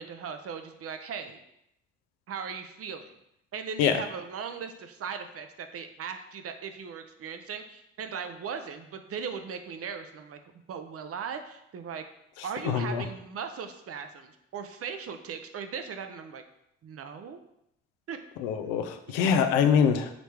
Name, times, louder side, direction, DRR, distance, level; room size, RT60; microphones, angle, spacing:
voice 1, 0.0-1.4 2.3-3.1 3.5-10.4 10.7-12.0 12.4-16.4 16.8-17.4 18.1-18.2 19.7-19.8, right 6 dB, 50° right, 8 dB, 0.6 m, -38 dB
voice 2, 12.6-13.0 18.4-20.1, left 7 dB, 85° left, 7 dB, 0.5 m, -24 dB
5.1 x 3.1 x 3.3 m, 0.80 s
hypercardioid pair, 50°, 30 cm